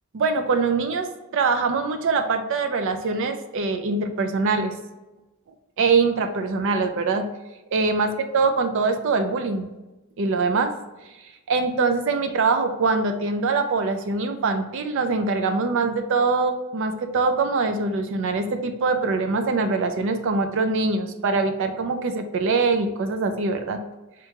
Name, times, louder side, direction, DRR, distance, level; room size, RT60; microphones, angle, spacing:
voice 1, 0.1-4.7 5.8-7.2 7.7-9.7 10.2-10.7 11.5-23.8, right 4 dB, 60° right, 7 dB, 0.4 m, -23 dB
3.6 x 2.9 x 3.4 m, 1.1 s
head